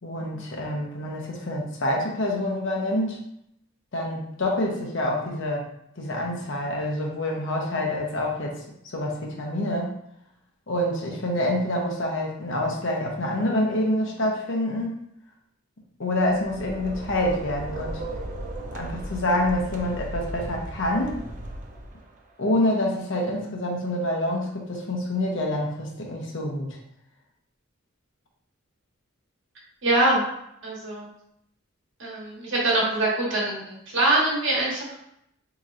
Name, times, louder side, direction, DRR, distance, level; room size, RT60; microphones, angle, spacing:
voice 1, 0.0-3.2 3.9-5.7 6.0-8.6 8.9-9.9 10.7-15.0 16.0-18.0 18.7-21.2 22.4-26.8, left 1 dB, 65° left, -1 dB, 0.8 m, -27 dB
sound 1, 16.3-22.2, right 1 dB, 40° right, 0.4 m, -36 dB
voice 2, 29.8-30.2 30.6-31.1 32.0-35.0, right 2 dB, 60° right, -5 dB, 1.3 m, -24 dB
4.1 x 2.9 x 2.5 m, 0.76 s
head